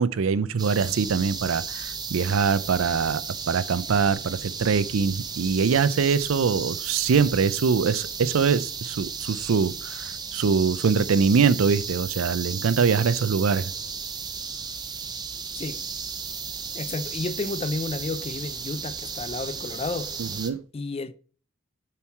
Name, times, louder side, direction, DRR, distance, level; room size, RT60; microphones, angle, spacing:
voice 1, 0.0-13.7 20.2-20.6, right 5 dB, 80° right, 0.5 m, -23 dB
sound 1, 0.6-20.5, right 6 dB, 20° right, 0.6 m, -34 dB
voice 2, 16.7-20.2 20.7-21.1, left 3 dB, 30° left, 0.4 m, -31 dB
7.1 x 4.6 x 4.5 m
head